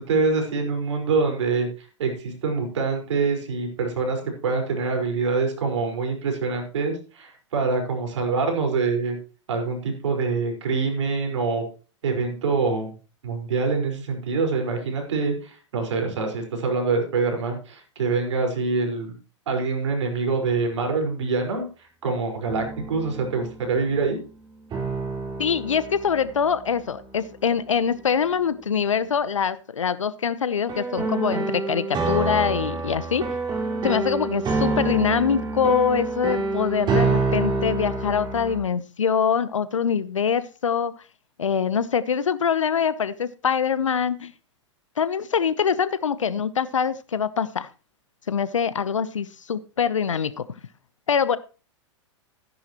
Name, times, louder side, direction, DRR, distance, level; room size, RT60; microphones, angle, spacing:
voice 1, 0.0-1.7 2.0-9.2 9.5-11.6 12.0-12.9 13.2-19.1 19.5-21.6 22.0-24.2, right 4 dB, 70° right, 3 dB, 4.9 m, -25 dB
sound 1, 20.4-20.5 22.5-23.5 24.7-28.0 30.7-38.6, right 3 dB, 30° right, 4.0 m, -27 dB
voice 2, 25.4-33.2 33.8-40.9 41.4-44.3 45.0-47.7 48.3-50.4 51.1-51.4, left 7 dB, 85° left, 16 dB, 0.9 m, -24 dB
14.0 x 10.5 x 3.0 m, 0.34 s
hypercardioid pair, 105°, 16 cm